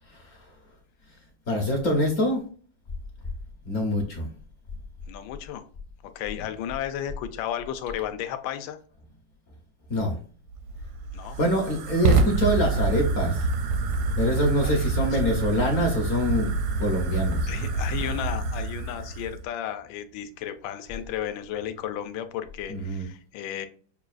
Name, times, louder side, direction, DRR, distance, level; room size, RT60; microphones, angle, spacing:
voice 1, 0.1-0.5 1.5-2.4 3.6-4.3 9.9-10.2 11.4-13.5 14.2-16.5 16.8-17.5 22.7-23.1, equal, 55° left, 0.9 m, -25 dB
voice 2, 5.1-5.7 6.0-8.8 11.1-11.4 14.6-15.1 17.5-23.7, left 10 dB, 80° left, 1.3 m, -34 dB
Fire, 10.5-19.4, right 3 dB, 75° right, 0.9 m, -27 dB
6.2 x 2.3 x 2.4 m
omnidirectional pair, 2.2 m